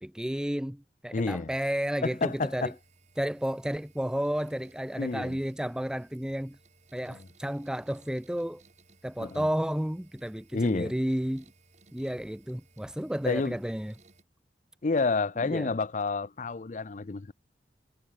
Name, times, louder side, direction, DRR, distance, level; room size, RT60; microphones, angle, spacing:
voice 1, 0.0-2.7 3.2-6.6 6.9-8.6 9.0-11.5 11.9-13.9 15.4-15.7, equal, 5° right, 0.4 m, -32 dB
voice 2, 1.1-1.5 2.0-2.7 5.0-5.4 7.1-7.2 9.2-9.5 10.5-10.9 13.3-13.6 14.8-17.3, left 3 dB, 45° left, 0.5 m, -29 dB
sound 1, 2.0-14.2, right 3 dB, 40° right, 5.2 m, -61 dB
head